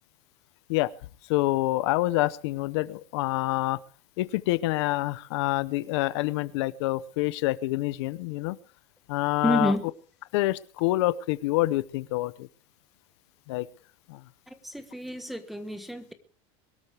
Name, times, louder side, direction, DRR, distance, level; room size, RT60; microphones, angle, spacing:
voice 1, 1.3-3.8 4.2-8.6 9.1-9.7 10.3-12.5 13.5-13.7 14.1-14.2, left 18 dB, 80° left, 16 dB, 0.8 m, -27 dB
voice 2, 9.4-9.9 14.5-16.1, equal, ahead, 9 dB, 1.3 m, -29 dB
23.0 x 13.0 x 3.5 m, 0.38 s
cardioid pair, 175°, 14 cm